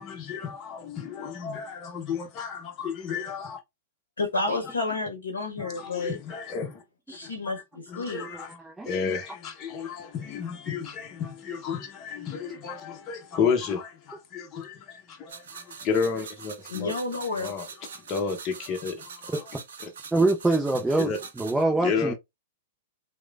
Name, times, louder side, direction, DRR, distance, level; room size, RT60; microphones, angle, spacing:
voice 1, 0.0-3.6 5.6-6.8 7.2-7.5 7.9-8.5 8.8-16.9 17.4-19.4 19.8-19.9 21.0-21.2 21.8-22.1, left 6 dB, 35° left, 0.7 m, -32 dB
voice 2, 4.2-6.2 7.1-7.6 8.0-8.2 16.7-17.5, left 3 dB, 85° left, 0.7 m, -30 dB
voice 3, 8.2-8.9 20.1-22.1, right 2 dB, 10° right, 0.4 m, -25 dB
sound 1, 15.3-21.6, right 6 dB, 70° right, 0.5 m, -44 dB
3.0 x 2.1 x 2.3 m
hypercardioid pair, 110°, 0 cm